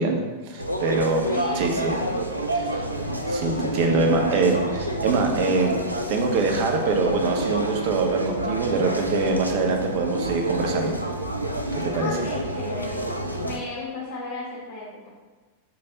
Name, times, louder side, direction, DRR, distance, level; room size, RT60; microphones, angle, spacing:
voice 1, 0.0-1.9 2.5-2.9 3.3-5.8 6.1-10.9 11.8-12.2, right 3 dB, 45° right, 2 dB, 0.6 m, -24 dB
sound 1, 0.6-13.6, right 1 dB, 90° right, 0.3 m, -28 dB
voice 2, 1.3-1.9 11.9-13.1 13.4-15.1, left 2 dB, 50° left, -6 dB, 1.0 m, -35 dB
5.3 x 3.3 x 2.8 m, 1.3 s
figure-of-eight pair, 90°, 0 cm